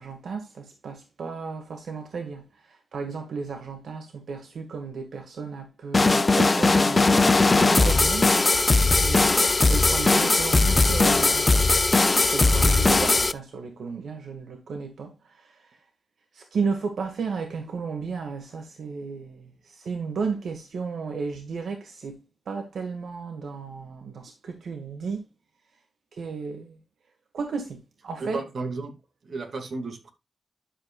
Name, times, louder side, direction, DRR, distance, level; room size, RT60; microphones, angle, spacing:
voice 1, 0.0-2.4 2.9-8.3 9.0-9.3 9.7-11.6 12.2-15.6 16.3-25.2 26.1-26.8 27.3-28.4, right 5 dB, 80° right, 1.8 m, -33 dB
sound 1, 5.9-13.3, left 3 dB, 25° left, 0.5 m, -19 dB
voice 2, 9.1-9.6 28.2-29.0 29.2-30.1, right 3 dB, 60° right, 2.3 m, -34 dB
11.0 x 7.1 x 2.4 m
wide cardioid pair, 165°, 0 cm